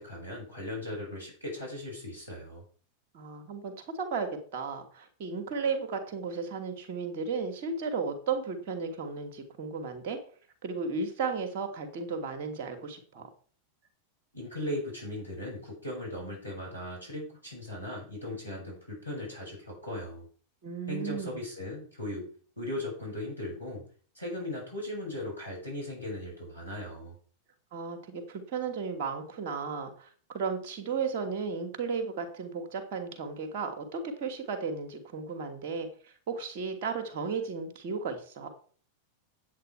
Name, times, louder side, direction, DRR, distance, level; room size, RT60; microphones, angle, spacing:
voice 1, 0.0-2.6 14.3-20.3 20.9-22.3 22.6-23.8 24.1-27.2, left 1 dB, 90° left, -3 dB, 6.1 m, -38 dB
voice 2, 3.1-10.2 10.6-13.3 20.6-21.4 27.7-38.5, right 5 dB, 50° right, 6 dB, 2.6 m, -34 dB
10.0 x 8.7 x 4.6 m, 0.44 s
figure-of-eight pair, 90°, 0 cm